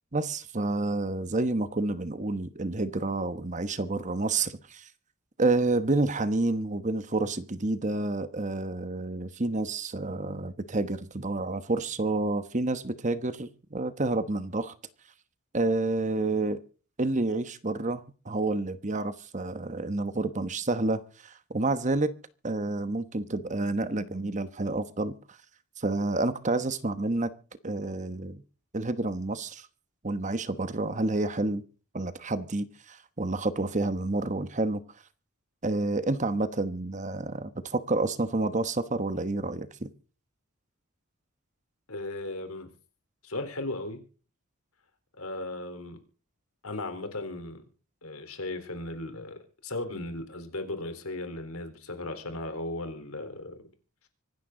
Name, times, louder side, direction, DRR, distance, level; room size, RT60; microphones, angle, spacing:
voice 1, 0.1-4.9 5.4-14.7 15.5-16.6 17.0-22.1 22.4-25.1 25.8-27.3 27.6-28.4 28.7-29.7 30.0-31.6 31.9-34.8 35.6-39.9, right 2 dB, 35° right, 1.1 m, -29 dB
voice 2, 41.9-42.7 43.2-44.0 45.2-46.0 46.6-47.6 48.0-53.6, left 2 dB, 85° left, 3.8 m, -36 dB
25.5 x 10.5 x 3.9 m
head